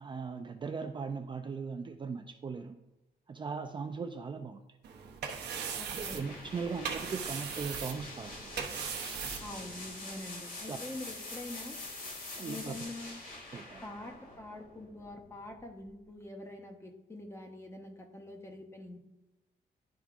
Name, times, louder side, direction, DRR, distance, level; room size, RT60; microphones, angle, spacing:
voice 1, 0.0-2.8 3.3-4.6 5.9-8.8 10.7-10.8 12.4-12.7 13.5-13.9, right 5 dB, 30° right, 6 dB, 0.4 m, -39 dB
sound 1, 4.8-9.9, right 6 dB, 80° right, 0.9 m, -39 dB
voice 2, 5.8-6.2 9.4-11.8 12.4-13.2 13.8-19.0, left 2 dB, 15° left, 4 dB, 1.0 m, -45 dB
sound 2, 6.0-15.7, left 2 dB, 60° left, 2.4 m, -45 dB
11.5 x 4.6 x 2.5 m, 1.0 s
cardioid pair, 120°, 17 cm